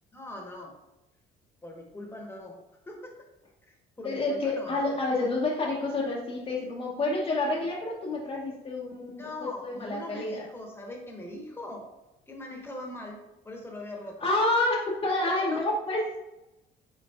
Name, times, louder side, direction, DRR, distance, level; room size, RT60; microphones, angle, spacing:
voice 1, 0.1-0.8 1.6-3.1 3.7-4.8 9.2-11.9 12.3-13.2 13.4-14.3 15.2-15.7, left 1 dB, 15° left, 1 dB, 1.0 m, -41 dB
voice 2, 4.0-9.2 9.6-10.4 14.2-16.0, left 2 dB, 35° left, -3 dB, 0.7 m, -28 dB
5.3 x 3.9 x 2.3 m, 0.95 s
cardioid pair, 110°, 17 cm